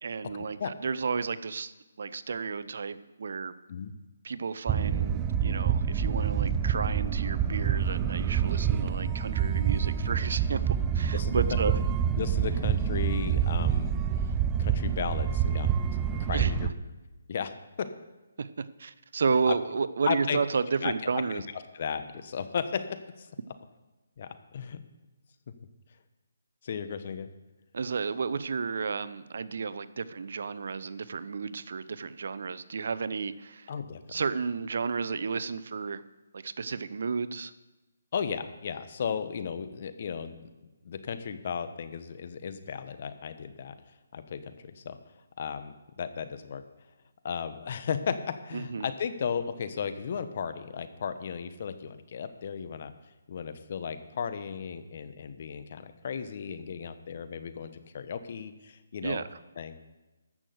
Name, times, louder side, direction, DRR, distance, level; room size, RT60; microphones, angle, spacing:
voice 1, 0.0-1.7 2.0-3.5 4.2-11.8 16.3-16.5 18.4-21.4 27.7-33.7 34.1-36.0 36.3-37.5 48.5-48.9 59.0-59.3, right 5 dB, 60° right, 15 dB, 0.6 m, -32 dB
sound 1, 4.7-16.7, right 8 dB, 15° right, 0.5 m, -27 dB
voice 2, 12.2-15.7 16.1-16.7 17.3-17.5 19.5-19.6 20.1-20.4 20.8-22.8 23.2-23.3 24.2-24.8 26.6-27.3 33.7-34.0 38.1-40.5 40.8-43.7 44.1-45.0 45.4-46.6 47.2-52.9 53.3-59.2 59.6-59.7, left 7 dB, 45° left, 10 dB, 1.1 m, -35 dB
13.5 x 6.3 x 7.8 m, 1.1 s
hypercardioid pair, 155°, 0 cm